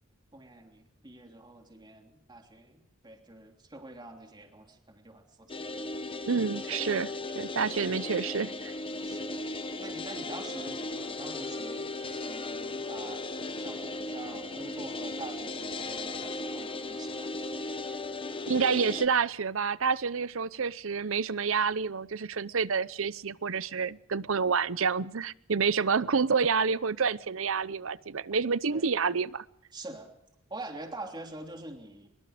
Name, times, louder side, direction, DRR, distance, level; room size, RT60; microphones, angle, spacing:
voice 1, 0.3-5.5 9.0-9.3 9.8-17.5 28.7-28.9 29.7-30.1 30.5-32.1, right 2 dB, 20° right, 3.2 m, -45 dB
sound 1, 5.5-19.1, left 2 dB, 25° left, 1.1 m, -36 dB
voice 2, 6.3-8.7 18.5-29.4, right 5 dB, 70° right, 0.7 m, -28 dB
24.0 x 22.5 x 5.1 m
head